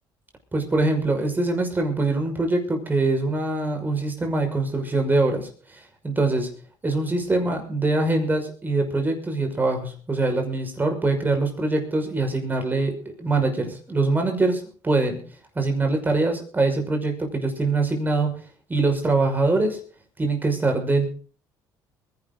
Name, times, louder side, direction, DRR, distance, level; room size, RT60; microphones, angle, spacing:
voice 1, 0.5-6.5 6.8-15.2 15.6-18.3 18.7-19.8 20.2-21.1, right 2 dB, 20° right, 4 dB, 5.9 m, -23 dB
22.5 x 11.5 x 4.0 m, 0.41 s
cardioid pair, 100°, 9 cm